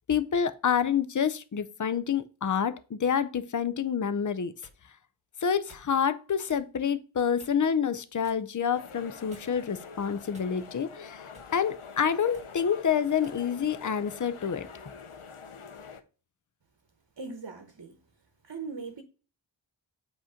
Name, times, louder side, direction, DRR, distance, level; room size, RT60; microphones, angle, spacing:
voice 1, 0.1-4.5 5.4-14.7, left 7 dB, 40° left, 0.6 m, -28 dB
sound 1, 4.2-4.8 5.7-5.9 6.5-6.7 7.4-7.7 8.2-8.5 9.3-9.7 10.3-10.8 11.3-11.6 12.2-12.5 13.2-13.4 14.1-14.3, equal, 15° right, 1.8 m, -55 dB
sound 2, 8.7-16.0, left 5 dB, 80° left, 0.8 m, -46 dB
voice 2, 17.2-18.0 18.4-19.0, right 4 dB, 50° right, 1.0 m, -39 dB
7.8 x 3.0 x 5.0 m
wide cardioid pair, 50°, 49 cm